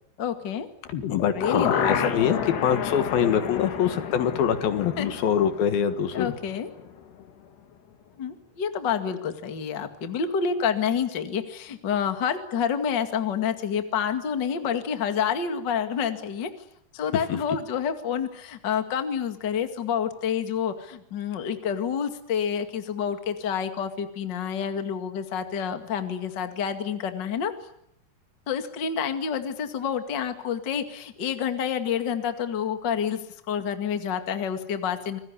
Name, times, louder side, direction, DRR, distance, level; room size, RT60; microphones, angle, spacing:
voice 1, 0.2-0.7 1.3-1.9 5.0-5.1 6.1-6.7 8.2-16.5 16.9-27.5 28.5-33.2 33.5-35.2, left 7 dB, 35° left, 7 dB, 2.0 m, -28 dB
sound 1, 0.9-6.9 7.2-7.3, left 8 dB, 85° left, 4.5 m, -30 dB
voice 2, 1.1-6.3 17.3-17.4, left 8 dB, 70° left, 10 dB, 3.1 m, -24 dB
27.0 x 21.0 x 9.7 m, 0.74 s
omnidirectional pair, 4.6 m